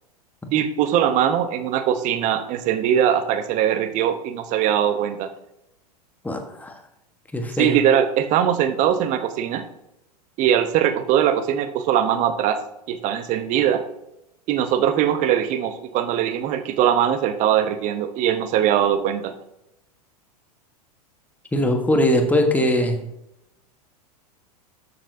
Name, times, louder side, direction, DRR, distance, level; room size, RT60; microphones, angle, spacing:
voice 1, 0.5-5.3 7.6-9.6 10.4-12.6 12.9-13.8 14.5-19.3, right 10 dB, 40° right, 9 dB, 1.0 m, -21 dB
voice 2, 6.2-6.7 7.3-7.8 21.5-23.0, left 1 dB, 10° left, 4 dB, 1.4 m, -21 dB
13.0 x 6.9 x 2.7 m, 0.84 s
figure-of-eight pair, 95°, 21 cm